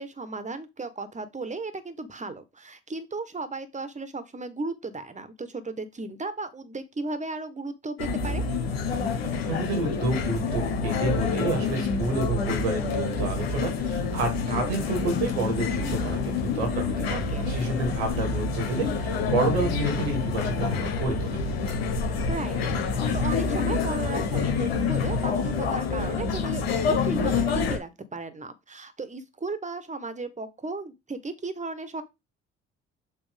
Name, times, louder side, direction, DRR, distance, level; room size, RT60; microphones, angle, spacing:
voice 1, 0.0-8.4 17.1-17.5 22.3-32.0, right 3 dB, 25° right, 1.5 m, -35 dB
sound 1, 8.0-27.8, left 4 dB, 90° left, 1.3 m, -27 dB
voice 2, 9.5-21.4, right 2 dB, 85° right, 2.0 m, -29 dB
7.3 x 3.1 x 5.2 m
hypercardioid pair, 50°, 30 cm